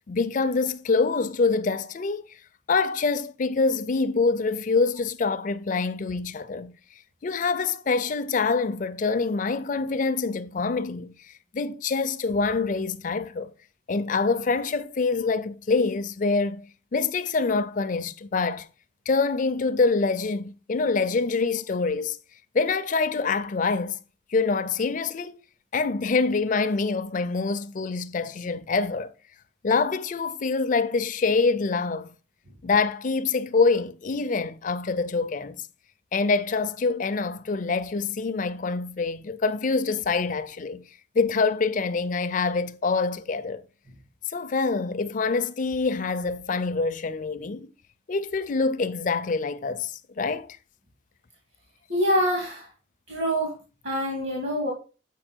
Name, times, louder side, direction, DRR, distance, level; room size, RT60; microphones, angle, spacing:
voice 1, 0.1-2.4 2.7-6.7 7.2-13.5 13.9-16.7 16.9-18.7 19.1-22.2 22.5-24.0 24.3-25.4 25.7-29.1 29.6-32.1 32.6-35.6 36.1-40.8 41.1-43.6 44.3-47.7 48.1-50.5, left 4 dB, 45° left, 0.4 m, -25 dB
voice 2, 51.9-52.7 53.1-53.5 53.8-54.7, equal, 65° right, 2.5 m, -25 dB
7.6 x 4.8 x 4.4 m
head